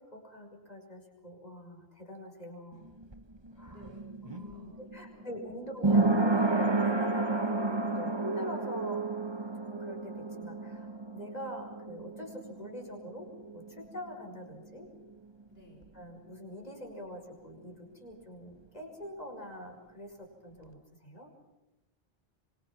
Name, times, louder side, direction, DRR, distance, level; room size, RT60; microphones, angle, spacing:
voice 1, 0.0-2.9 3.6-3.9 4.2-9.1 9.7-14.9 15.9-21.3, equal, 40° left, 2 dB, 5.8 m, -44 dB
sound 1, 2.7-14.3 14.5-14.6, right 3 dB, 25° right, 1.4 m, -31 dB
voice 2, 3.7-5.5 15.5-15.9, left 1 dB, 70° left, 3 dB, 6.1 m, -58 dB
26.5 x 24.5 x 6.1 m, 0.92 s
omnidirectional pair, 1.0 m